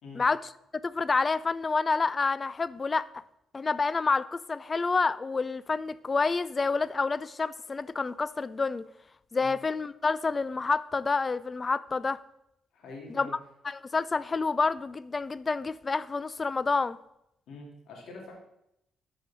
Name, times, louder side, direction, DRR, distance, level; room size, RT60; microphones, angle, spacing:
voice 1, 0.7-3.1 3.5-8.9 9.3-12.2 13.1-13.3 13.6-17.0, left 4 dB, 30° left, 0.4 m, -28 dB
voice 2, 12.7-13.4 17.5-18.3, left 3 dB, 70° left, 2.6 m, -45 dB
13.0 x 4.9 x 4.2 m
cardioid pair, 90°, 0 cm